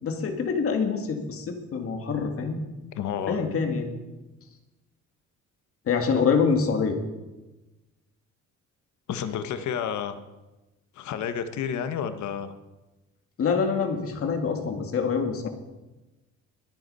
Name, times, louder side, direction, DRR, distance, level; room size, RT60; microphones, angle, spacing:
voice 1, 0.0-2.7 3.3-3.9 5.9-7.0 13.4-15.5, left 5 dB, 50° left, 5 dB, 2.1 m, -25 dB
voice 2, 2.9-3.4 9.1-10.2 11.0-12.5 15.4-15.5, left 8 dB, 75° left, 10 dB, 1.2 m, -30 dB
21.0 x 8.2 x 5.5 m, 1.1 s
cardioid pair, 160°, 29 cm